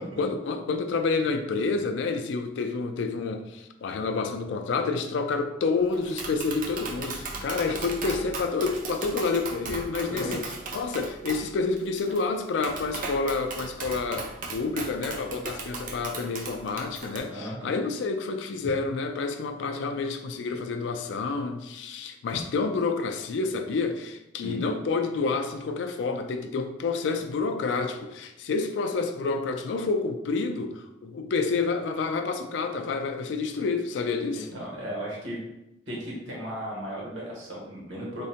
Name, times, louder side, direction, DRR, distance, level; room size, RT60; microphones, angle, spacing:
voice 1, 0.2-10.4 10.7-34.5, left 4 dB, 70° left, 7 dB, 0.3 m, -29 dB
Tap, 5.9-17.2, right 3 dB, 45° right, 0.4 m, -37 dB
voice 2, 17.3-17.8 24.4-24.6 34.3-35.4 35.9-38.3, equal, 75° right, -4 dB, 1.2 m, -35 dB
3.7 x 2.1 x 2.7 m, 0.89 s
head